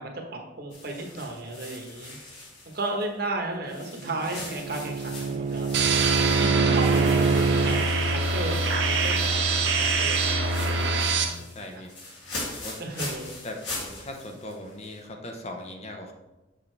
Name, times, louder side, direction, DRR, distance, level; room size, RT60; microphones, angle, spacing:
voice 1, 0.0-2.2 2.7-5.7 6.4-11.8 12.8-13.3, right 2 dB, 55° right, 2 dB, 1.1 m, -34 dB
sound 1, 0.7-3.3 3.7-9.6 9.9-15.1, left 2 dB, 65° left, 2.4 m, -41 dB
Bowed string instrument, 3.8-7.9, right 5 dB, 35° right, 0.3 m, -26 dB
sound 2, 5.7-11.2, right 3 dB, 70° right, 0.9 m, -24 dB
voice 2, 10.6-10.9 11.6-11.9 12.6-12.8 13.4-16.1, left 1 dB, 35° left, 3 dB, 0.7 m, -39 dB
7.1 x 6.4 x 3.3 m, 1.0 s
head